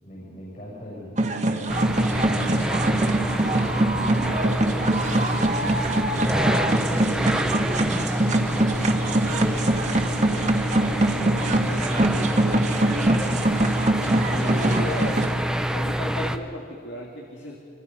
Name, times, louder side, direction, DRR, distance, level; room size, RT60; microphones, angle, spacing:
voice 1, 0.0-5.2 5.8-8.1 8.4-9.7 10.1-10.4 10.7-13.1, left 1 dB, 45° left, -5 dB, 7.8 m, -39 dB
sound 1, 1.2-15.3, right 2 dB, 40° right, 1.7 m, -23 dB
sound 2, 1.7-16.4, equal, 5° right, 0.8 m, -27 dB
voice 2, 14.3-15.2 15.7-17.6, left 2 dB, 70° left, -1 dB, 2.4 m, -35 dB
26.5 x 26.0 x 5.6 m, 2.3 s
head